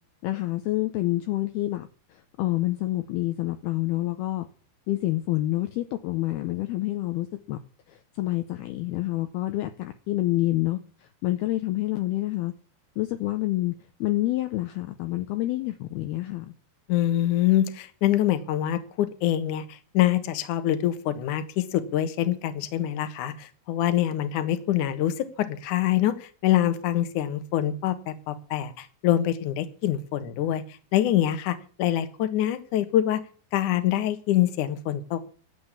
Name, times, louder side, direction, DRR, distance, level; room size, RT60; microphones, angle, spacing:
voice 1, 0.2-1.9 2.4-4.5 4.9-7.6 8.2-10.8 11.2-12.5 13.0-13.7 14.0-16.5, left 17 dB, 80° left, 8 dB, 2.4 m, -27 dB
voice 2, 16.9-30.6 30.9-33.2 33.5-35.2, left 12 dB, 65° left, 10 dB, 2.2 m, -25 dB
12.0 x 8.0 x 8.5 m, 0.41 s
omnidirectional pair, 5.1 m